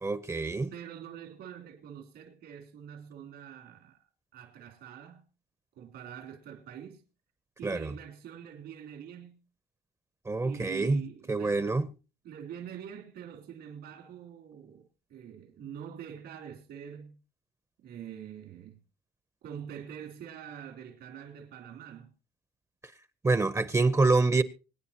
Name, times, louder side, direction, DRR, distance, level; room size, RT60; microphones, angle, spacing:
voice 1, 0.0-0.7 7.6-7.9 10.3-11.9 23.2-24.4, right 3 dB, 15° right, 0.7 m, -26 dB
voice 2, 0.7-4.0 4.3-5.2 5.8-7.0 7.6-9.4 10.4-11.8 12.2-17.2 17.8-18.8 19.4-22.1, right 9 dB, 80° right, 3.4 m, -45 dB
25.0 x 9.4 x 2.9 m
cardioid pair, 110°, 17 cm